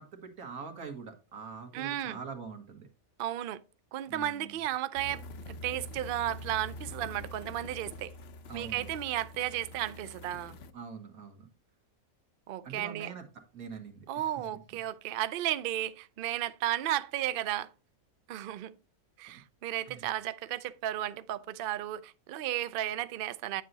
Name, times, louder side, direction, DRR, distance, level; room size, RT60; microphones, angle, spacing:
voice 1, 0.0-2.9 4.1-4.6 8.5-8.9 10.7-11.5 12.6-14.8 19.9-20.1, right 5 dB, 85° right, 2.0 m, -44 dB
voice 2, 1.7-2.2 3.2-3.6 3.9-5.2 5.6-8.1 8.5-10.6 12.5-13.1 14.1-17.7 18.3-18.8 19.2-23.6, right 12 dB, 65° right, 0.5 m, -34 dB
sound 1, 5.0-10.7, left 1 dB, 55° left, 0.8 m, -45 dB
9.0 x 7.5 x 2.7 m
omnidirectional pair, 1.5 m